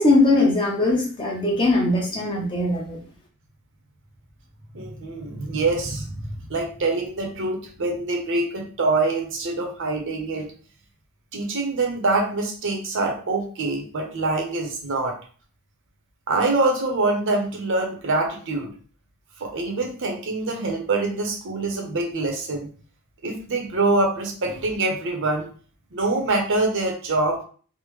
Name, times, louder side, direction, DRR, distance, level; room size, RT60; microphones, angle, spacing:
voice 1, 0.0-3.0, left 2 dB, 25° left, -1 dB, 0.7 m, -20 dB
voice 2, 4.7-6.2 6.5-10.5 11.3-15.1 16.3-18.7 19.4-22.7 23.2-25.5 25.9-27.4, right 2 dB, 60° right, 2 dB, 0.7 m, -25 dB
3.3 x 2.0 x 3.1 m, 0.42 s
head